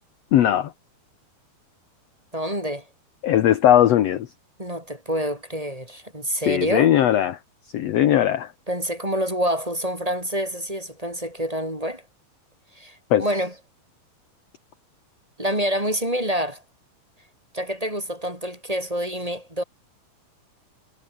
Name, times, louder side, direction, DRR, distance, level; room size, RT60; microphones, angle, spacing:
voice 1, 0.3-0.7 3.2-4.3 6.5-7.4 7.7-8.5 13.1-13.2, left 11 dB, 65° left, 1.6 m, -18 dB
voice 2, 2.3-2.8 4.6-6.9 8.7-12.0 12.8-13.5 15.4-16.6 17.5-19.6, equal, 10° right, 4.8 m, -27 dB
omnidirectional pair, 4.3 m